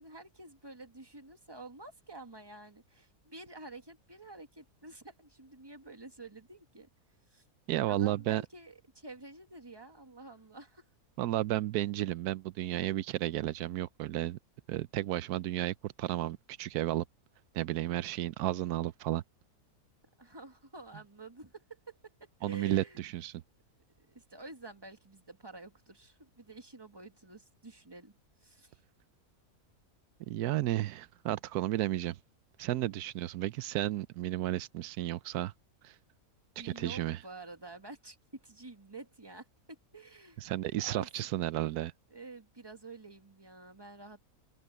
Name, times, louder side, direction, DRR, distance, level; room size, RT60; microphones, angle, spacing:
voice 1, 0.0-6.9 7.3-7.4 7.9-10.9 20.2-23.0 24.0-28.1 28.4-28.8 36.6-40.4 40.8-41.1 42.1-44.2, right 3 dB, 15° right, 1.7 m, -49 dB
voice 2, 7.7-8.4 11.2-14.4 14.7-17.0 17.5-19.2 22.4-23.3 30.3-32.2 32.6-35.5 35.8-35.9 36.6-37.2 40.4-41.9, right 15 dB, 90° right, 1.1 m, -33 dB
open air
omnidirectional pair, 1.6 m